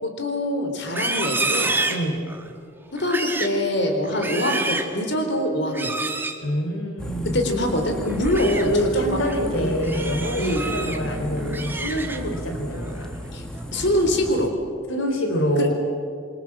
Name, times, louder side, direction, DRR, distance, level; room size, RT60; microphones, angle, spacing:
voice 1, 0.0-1.7 2.9-5.9 7.3-9.2 9.6-9.7 10.4-10.6 13.3-13.4 13.7-14.5 15.6-15.7, left 1 dB, 60° left, 5 dB, 4.0 m, -24 dB
Livestock farm animals working animals, 0.8-2.5 3.0-3.6 4.0-5.0 5.7-6.4 8.1-8.6 9.1-9.4 9.8-11.0 11.4-12.4 12.8-13.1 13.6-14.0, right 3 dB, 10° right, 1.7 m, -28 dB
voice 2, 1.9-2.2 6.4-7.5 8.6-13.1 14.9-15.7, equal, 85° left, 4 dB, 3.5 m, -26 dB
sound 1, 7.0-14.5, equal, 5° left, 1.5 m, -33 dB
28.0 x 24.5 x 7.6 m, 2.4 s
head